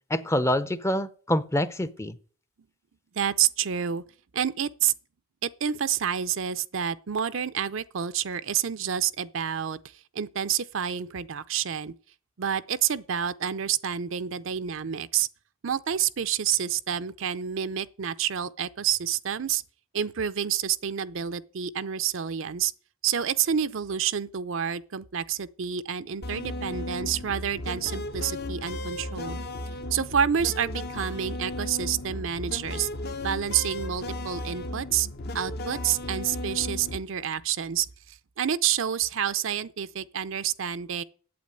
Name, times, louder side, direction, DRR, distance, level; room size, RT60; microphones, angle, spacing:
voice 1, 0.1-2.1, left 1 dB, 15° left, 0.6 m, -26 dB
voice 2, 3.1-4.0 4.3-4.9 5.4-11.9 12.4-15.3 15.6-19.6 19.9-22.7 23.0-29.4 29.9-32.9 33.2-35.1 35.3-41.0, right 9 dB, 60° right, 0.6 m, -28 dB
sound 1, 26.2-37.0, left 1 dB, 50° left, 0.7 m, -35 dB
8.6 x 8.1 x 9.0 m
head